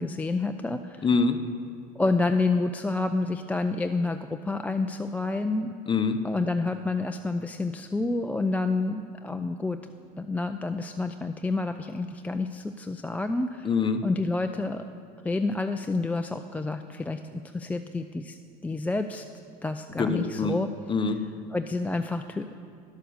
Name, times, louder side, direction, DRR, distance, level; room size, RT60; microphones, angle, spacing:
voice 1, 0.0-1.1 2.0-5.7 6.2-9.8 10.2-13.7 14.0-14.8 15.2-19.2 19.6-20.7 21.5-22.6, left 3 dB, 5° left, 6 dB, 0.3 m, -29 dB
voice 2, 1.0-1.4 5.9-6.2 13.6-14.0 20.0-20.5 20.9-21.2, left 4 dB, 25° left, 8 dB, 0.8 m, -24 dB
11.0 x 6.7 x 6.5 m, 2.3 s
hypercardioid pair, 80°, 21 cm